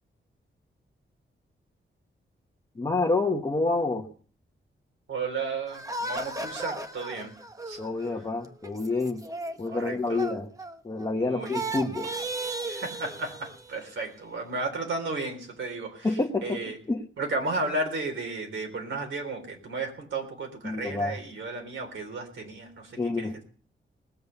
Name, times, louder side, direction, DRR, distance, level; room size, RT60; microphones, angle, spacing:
voice 1, 2.8-4.0 7.8-9.2 9.6-10.5 10.8-12.1 16.0-16.6 16.9-17.0 20.6-21.2 23.0-23.4, left 3 dB, 20° left, 1 dB, 1.1 m, -28 dB
voice 2, 5.1-7.3 7.7-7.8 9.7-10.2 11.2-11.5 12.7-16.8 17.2-23.4, right 3 dB, 70° right, 3 dB, 3.7 m, -34 dB
sound 1, 5.7-11.1 11.4-13.9, right 2 dB, 15° right, 1.0 m, -36 dB
19.5 x 7.8 x 6.8 m, 0.43 s
wide cardioid pair, 170°, 20 cm